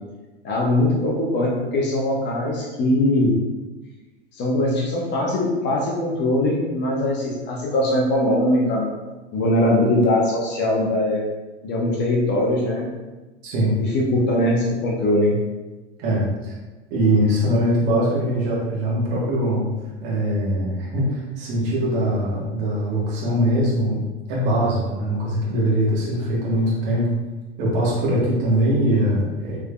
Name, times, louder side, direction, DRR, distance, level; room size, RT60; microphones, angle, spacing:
voice 1, 0.4-3.4 4.3-9.0 9.3-11.2 11.6-12.9 13.8-15.4, left 1 dB, 30° left, -2 dB, 0.8 m, -21 dB
voice 2, 13.4-13.8 16.0-16.5 16.9-19.7 20.0-24.0 24.3-27.1 27.6-29.6, right 1 dB, 45° right, -5 dB, 1.4 m, -22 dB
3.5 x 3.3 x 2.3 m, 1.2 s
figure-of-eight pair, 90°, 34 cm